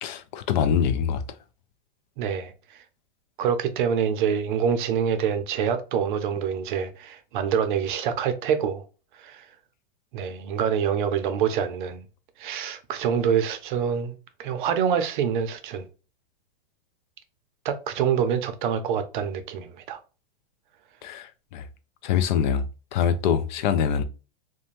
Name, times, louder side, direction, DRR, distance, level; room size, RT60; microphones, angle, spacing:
voice 1, 0.0-1.2 21.0-21.7 22.0-22.6 22.9-24.0, left 8 dB, 55° left, 0.4 m, -24 dB
voice 2, 2.2-2.5 3.4-8.8 9.2-9.4 10.1-12.0 12.4-14.1 14.4-15.9 17.6-20.0, right 7 dB, 55° right, 0.6 m, -26 dB
2.5 x 2.2 x 2.9 m
hypercardioid pair, 140°, 29 cm